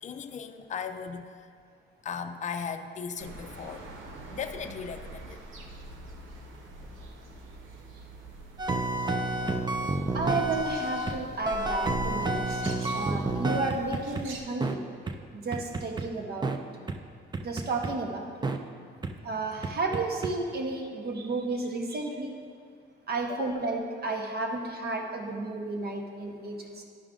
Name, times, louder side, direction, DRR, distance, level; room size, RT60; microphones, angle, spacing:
voice 1, 0.0-1.3 2.0-3.8 4.3-5.4 19.0-19.1 19.6-19.7 23.3-23.7, left 6 dB, 35° left, 6 dB, 0.5 m, -37 dB
sound 1, 3.2-14.4, right 1 dB, 80° right, 0.9 m, -44 dB
sound 2, 8.6-11.2 11.5-14.2 14.6-14.7 15.1-15.2 15.5-16.1 16.4-16.6 16.9-17.0 17.3-17.9 18.4-18.6 19.0-19.1 19.6-20.3, right 2 dB, 20° right, 0.5 m, -30 dB
voice 2, 10.1-12.6 12.9-14.8 15.3-16.5 17.4-18.2 19.2-22.3 23.1-26.8, right 3 dB, 55° right, 2 dB, 1.1 m, -32 dB
11.5 x 4.8 x 3.8 m, 2.2 s
cardioid pair, 90°, 20 cm